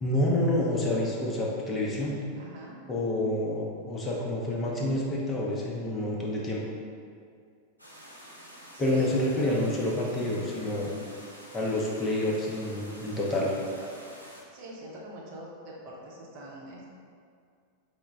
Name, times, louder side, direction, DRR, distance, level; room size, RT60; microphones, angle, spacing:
voice 1, 0.0-2.2 2.9-6.7 8.8-10.9 11.5-13.5, left 1 dB, 20° left, -3 dB, 0.6 m, -28 dB
voice 2, 2.4-2.8 3.2-3.4 8.7-9.7 13.1-13.2 13.8-14.1 14.5-16.8, equal, 45° right, -3 dB, 0.7 m, -43 dB
sound 1, 7.8-14.4, equal, 85° left, 0.6 m, -48 dB
4.7 x 2.1 x 3.5 m, 2.2 s
figure-of-eight pair, 90°, 0 cm